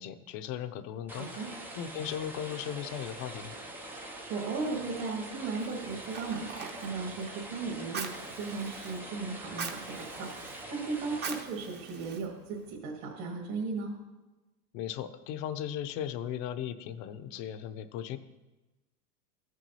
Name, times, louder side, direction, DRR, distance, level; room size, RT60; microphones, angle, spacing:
voice 1, 0.0-3.5 14.7-18.2, left 10 dB, 40° left, 12 dB, 0.6 m, -37 dB
sound 1, 1.1-11.4, right 1 dB, 5° right, 0.3 m, -44 dB
voice 2, 1.2-1.5 4.3-8.1 8.4-13.9, right 4 dB, 55° right, -3 dB, 2.0 m, -36 dB
Fire, 5.6-12.8, right 5 dB, 20° right, 0.8 m, -44 dB
14.0 x 6.2 x 2.8 m, 1.1 s
hypercardioid pair, 110°, 46 cm